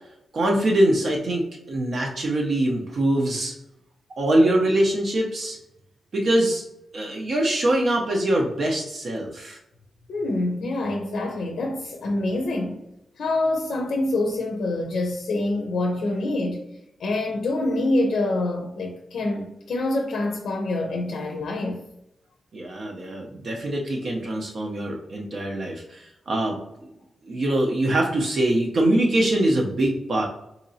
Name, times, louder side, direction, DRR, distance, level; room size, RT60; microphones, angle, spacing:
voice 1, 0.3-3.5 4.2-5.6 6.1-6.6 6.9-9.6 22.5-26.9 27.2-30.2, right 1 dB, 50° right, -1 dB, 0.5 m, -23 dB
voice 2, 10.1-12.8 13.2-16.6 17.0-21.8, left 2 dB, 80° left, 1 dB, 0.5 m, -26 dB
4.0 x 2.8 x 2.6 m, 0.83 s
wide cardioid pair, 160°, 0 cm